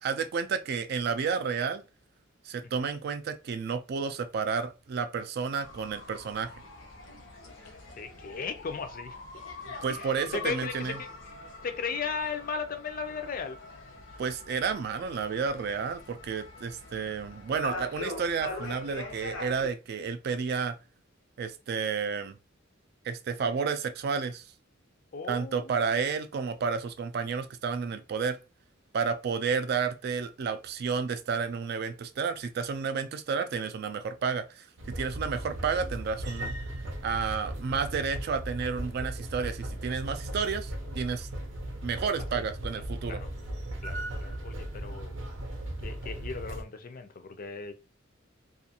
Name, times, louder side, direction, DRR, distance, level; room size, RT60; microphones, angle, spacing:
voice 1, 0.0-1.8 2.4-6.5 9.8-11.0 14.2-20.8 21.4-22.4 23.0-24.4 25.3-28.4 28.9-36.5 37.0-41.3 41.8-43.2, right 5 dB, 55° right, 0.3 m, -31 dB
sound 1, 5.6-19.7, left 2 dB, 90° left, 0.8 m, -43 dB
voice 2, 8.0-9.2 9.9-11.1 11.6-13.6 25.1-26.0 42.3-42.4 43.1-43.3 43.8-45.2 45.8-47.7, left 5 dB, 45° left, 0.4 m, -36 dB
sound 2, 34.8-46.6, right 1 dB, 85° right, 0.7 m, -37 dB
2.5 x 2.4 x 2.7 m
head